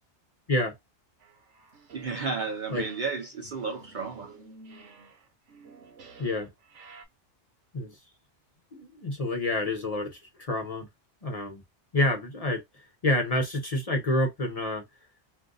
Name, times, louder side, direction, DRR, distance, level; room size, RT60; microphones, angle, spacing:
sound 1, 1.2-2.4 2.6-7.0, right 4 dB, 80° right, 1.2 m, -51 dB
voice 1, 1.9-4.3, right 4 dB, 55° right, 0.6 m, -33 dB
voice 2, 6.2-6.5 7.7-8.0 8.7-10.9 11.2-11.6 11.9-14.8, left 1 dB, 40° left, 0.7 m, -28 dB
2.6 x 2.5 x 3.7 m
omnidirectional pair, 1.2 m